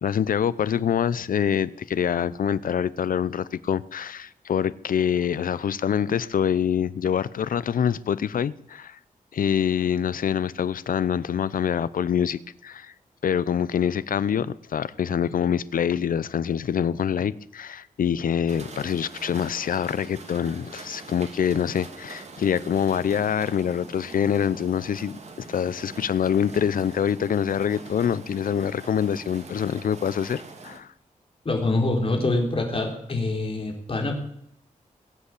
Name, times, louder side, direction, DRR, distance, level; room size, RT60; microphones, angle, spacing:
voice 1, 0.0-9.0 9.3-12.9 13.2-30.9, left 8 dB, 85° left, 0.7 m, -25 dB
sound 1, 18.5-30.8, right 4 dB, 50° right, 2.4 m, -44 dB
voice 2, 31.5-34.2, left 2 dB, 40° left, 3.8 m, -25 dB
21.0 x 8.2 x 8.5 m
wide cardioid pair, 130°, 14 cm